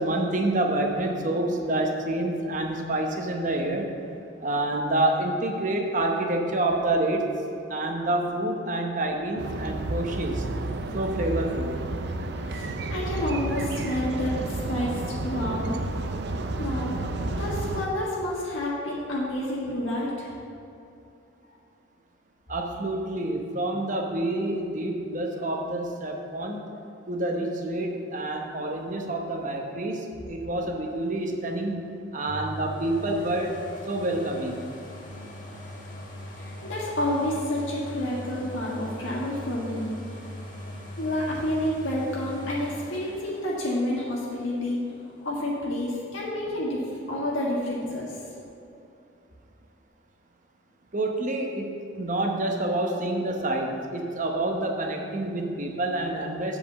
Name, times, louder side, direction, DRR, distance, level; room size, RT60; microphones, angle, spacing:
voice 1, 0.0-3.9 4.4-7.3 7.7-10.5 10.9-11.8 22.5-26.6 27.1-31.8 32.1-33.6 33.9-34.6 50.9-56.6, right 1 dB, 40° right, 2 dB, 0.9 m, -28 dB
sound 1, 9.4-17.9, right 2 dB, 55° right, 0.5 m, -31 dB
voice 2, 12.4-15.8 16.6-17.0 17.4-20.3 36.4-39.9 41.0-44.8 45.2-48.2, left 1 dB, 80° left, -5 dB, 1.6 m, -29 dB
sound 2, 32.3-46.0 46.5-46.6, equal, 40° left, 1.3 m, -41 dB
7.9 x 5.0 x 7.2 m, 2.7 s
head